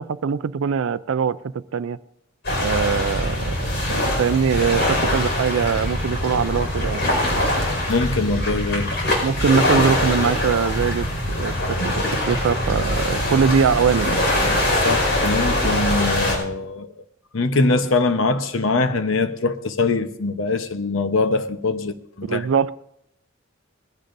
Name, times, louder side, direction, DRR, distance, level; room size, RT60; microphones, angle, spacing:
voice 1, 0.0-1.4 1.7-2.0 2.6-3.5 3.9-7.0 9.2-11.1 11.3-14.2 22.2-22.7, right 6 dB, 80° right, 0.4 m, -22 dB
sound 1, 2.4-16.4, left 1 dB, 60° left, 5.0 m, -23 dB
voice 2, 7.9-8.9 14.7-16.9 17.3-22.4, left 3 dB, 80° left, 0.9 m, -22 dB
21.0 x 15.5 x 2.6 m
head